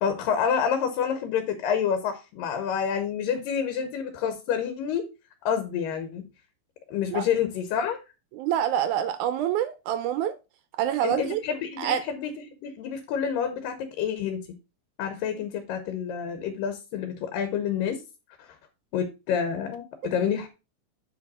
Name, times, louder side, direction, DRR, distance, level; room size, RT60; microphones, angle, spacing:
voice 1, 0.0-5.1 5.5-6.2 6.9-8.0 11.0-12.3 12.6-14.4 15.0-18.0 18.4-18.5 18.9-20.5, left 7 dB, 80° left, 8 dB, 2.6 m, -28 dB
voice 2, 8.3-10.4 10.8-11.4 11.8-12.0, right 10 dB, 80° right, 12 dB, 1.8 m, -26 dB
7.7 x 5.3 x 4.1 m, 0.28 s
omnidirectional pair, 4.0 m